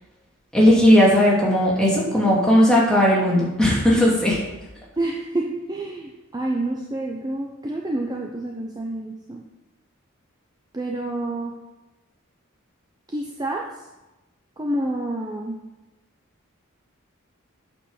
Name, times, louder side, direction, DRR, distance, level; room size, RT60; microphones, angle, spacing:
voice 1, 0.5-4.4, equal, 5° left, -6 dB, 2.6 m, -17 dB
voice 2, 5.0-9.4 10.7-11.6 13.1-13.8 14.6-15.6, right 1 dB, 20° right, 0 dB, 0.7 m, -28 dB
8.7 x 5.2 x 6.5 m, 1.0 s
head